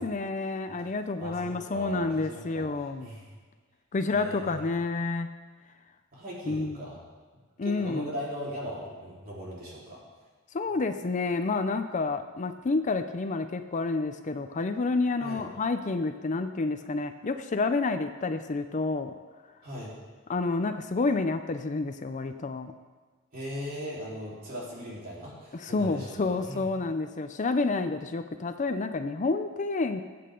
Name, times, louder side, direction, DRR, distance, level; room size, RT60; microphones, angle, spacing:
voice 1, 0.0-3.1 3.9-5.3 6.5-6.8 7.6-8.1 10.5-19.1 20.3-22.7 25.5-30.0, left 3 dB, 35° left, 9 dB, 0.5 m, -29 dB
voice 2, 1.2-2.7 3.0-3.3 4.1-4.6 6.1-7.0 7.6-10.0 15.2-15.4 19.6-19.9 23.3-26.6, equal, 40° right, -6 dB, 4.0 m, -38 dB
20.5 x 8.6 x 3.8 m, 1.4 s
head